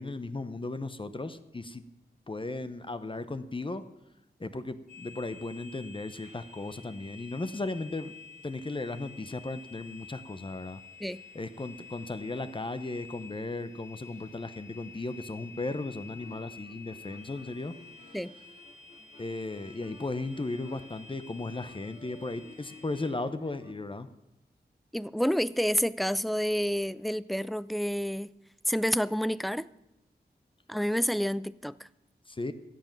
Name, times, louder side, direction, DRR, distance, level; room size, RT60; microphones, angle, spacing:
voice 1, 0.0-1.8 2.3-3.9 4.4-8.1 8.4-10.8 11.3-17.7 19.2-24.1 32.3-32.5, left 2 dB, 30° left, 0.8 m, -36 dB
sound 1, 4.9-23.1, left 4 dB, 45° left, 2.8 m, -51 dB
sound 2, 16.0-23.7, left 2 dB, 70° left, 4.0 m, -55 dB
voice 2, 24.9-28.3 28.7-29.7 30.7-31.7, equal, ahead, 0.4 m, -29 dB
14.0 x 8.3 x 7.4 m
wide cardioid pair, 80°, 17 cm